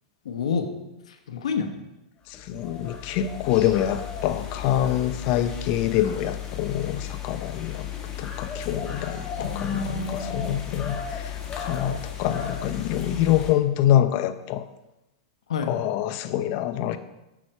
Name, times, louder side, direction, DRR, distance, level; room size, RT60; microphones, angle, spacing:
voice 1, 0.2-0.7 1.1-1.7 9.4-10.6 15.5-15.7, left 5 dB, 75° left, 6 dB, 1.1 m, -29 dB
voice 2, 2.3-7.9 8.2-14.6 15.6-17.0, left 11 dB, 50° left, 11 dB, 0.7 m, -25 dB
sound 1, 2.3-13.5, left 8 dB, 25° left, 1.6 m, -35 dB
8.0 x 6.3 x 4.4 m, 0.95 s
hypercardioid pair, 105°, 3 cm